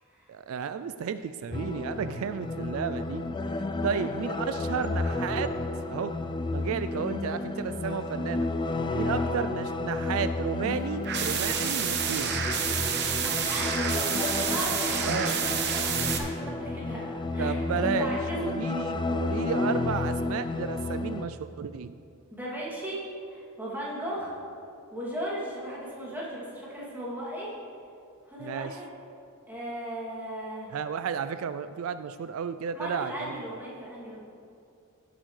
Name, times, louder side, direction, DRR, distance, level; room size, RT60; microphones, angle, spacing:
voice 1, 0.3-3.2 3.5-5.5 5.9-6.1 6.5-8.5 9.0-12.3 15.0-15.4 17.4-22.0 28.4-28.8 30.7-33.4, right 6 dB, 75° right, 11 dB, 0.3 m, -32 dB
sound 1, 1.5-21.3, left 2 dB, 20° left, 0.3 m, -31 dB
voice 2, 8.8-9.3 13.2-13.7 14.4-18.4 22.3-24.3 24.9-27.6 28.3-28.9 29.5-30.7 32.7-34.2, right 1 dB, 10° right, -7 dB, 2.6 m, -37 dB
sound 2, 11.0-16.2, right 7 dB, 50° right, 0.9 m, -29 dB
17.5 x 7.8 x 3.3 m, 2.6 s
head